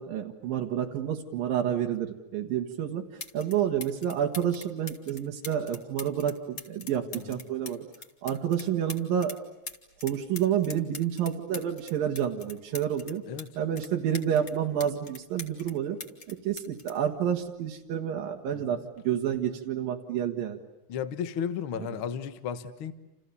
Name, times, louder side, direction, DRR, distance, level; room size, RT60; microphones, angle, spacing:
voice 1, 0.0-3.0 3.3-7.9 8.2-9.4 10.0-13.2 13.6-16.0 16.3-20.6 21.8-22.0, right 9 dB, 85° right, 2 dB, 3.3 m, -29 dB
sound 1, 2.7-2.8 3.2-3.5 3.8-9.4 9.7-13.5 13.8-15.7 16.0-17.8 18.8-19.0, left 3 dB, 30° left, 2.2 m, -42 dB
voice 2, 20.9-22.9, left 8 dB, 50° left, 11 dB, 1.7 m, -34 dB
29.0 x 28.5 x 6.9 m, 0.99 s
omnidirectional pair, 3.9 m